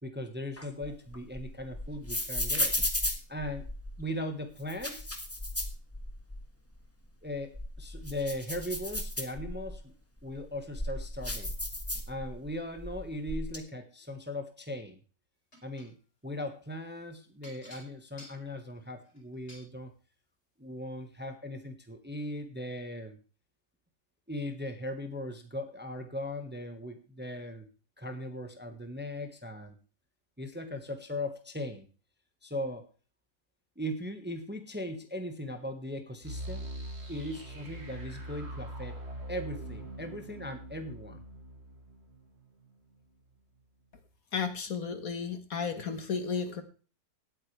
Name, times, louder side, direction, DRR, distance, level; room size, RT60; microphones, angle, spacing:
voice 1, 0.0-2.7 3.3-3.7 4.0-5.2 7.2-9.9 10.2-11.5 12.1-15.0 15.6-15.9 16.2-19.9 20.6-23.2 24.3-27.7 28.0-29.7 30.4-31.9 32.4-32.9 33.8-36.7 37.1-39.0 39.3-41.2, left 1 dB, 5° right, 6 dB, 1.3 m, -38 dB
sound 1, 0.6-4.0 4.6-6.4 6.8-6.9 7.4-9.8 10.3-12.5 12.8-13.6, left 1 dB, 10° left, 1.5 m, -34 dB
sound 2, 15.5-15.9 17.4-19.7 20.7-20.8 21.2-21.3, left 1 dB, 40° left, 4.8 m, -53 dB
sound 3, 36.2-43.0, right 1 dB, 40° right, 2.7 m, -43 dB
voice 2, 44.3-46.6, left 5 dB, 55° left, 9 dB, 1.8 m, -33 dB
18.5 x 8.8 x 3.4 m, 0.36 s
omnidirectional pair, 1.8 m